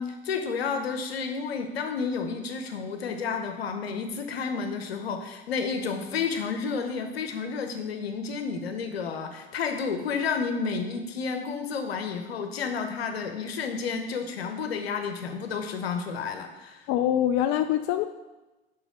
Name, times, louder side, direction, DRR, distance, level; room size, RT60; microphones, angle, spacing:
voice 1, 0.0-16.9, left 5 dB, 80° left, 6 dB, 1.0 m, -31 dB
voice 2, 16.9-18.0, left 11 dB, 50° left, 9 dB, 0.5 m, -24 dB
7.0 x 5.5 x 5.5 m, 1.1 s
figure-of-eight pair, 65°, 30 cm